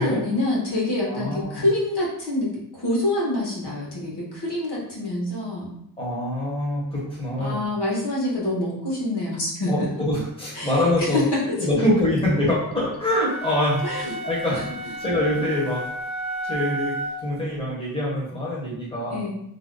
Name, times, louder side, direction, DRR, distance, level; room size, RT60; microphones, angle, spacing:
voice 1, 0.0-5.7 7.4-9.9 10.5-10.7 11.0-11.6 13.8-14.2 19.1-19.3, left 1 dB, 85° left, -5 dB, 1.1 m, -26 dB
voice 2, 1.1-1.7 6.0-7.7 9.7-11.2 11.6-14.7 15.0-15.9 16.4-19.2, left 1 dB, 15° left, -7 dB, 1.2 m, -25 dB
sound 1, 13.1-17.4, right 1 dB, 45° left, 0.8 m, -32 dB
2.7 x 2.2 x 3.8 m, 0.75 s
wide cardioid pair, 65°, 39 cm